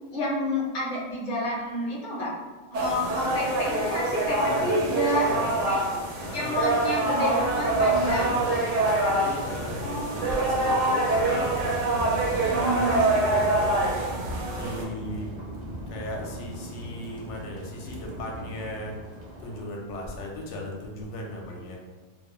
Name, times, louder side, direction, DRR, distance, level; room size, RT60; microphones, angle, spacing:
voice 1, 0.1-2.3 2.7-5.8 6.3-8.4 9.8-10.3 10.6-10.9 11.3-11.4 12.5-13.0, left 1 dB, 50° left, -3 dB, 0.6 m, -29 dB
sound 1, 2.7-14.8, right 2 dB, 75° right, 0.9 m, -25 dB
voice 2, 4.4-5.7 6.2-6.8 8.1-11.8 12.1-13.9 14.6-15.3 15.9-19.0 19.4-21.8, left 1 dB, 75° left, 0 dB, 0.9 m, -37 dB
sound 2, 7.4-19.7, equal, 60° right, 0.4 m, -39 dB
2.4 x 2.0 x 3.0 m, 1.3 s
omnidirectional pair, 1.3 m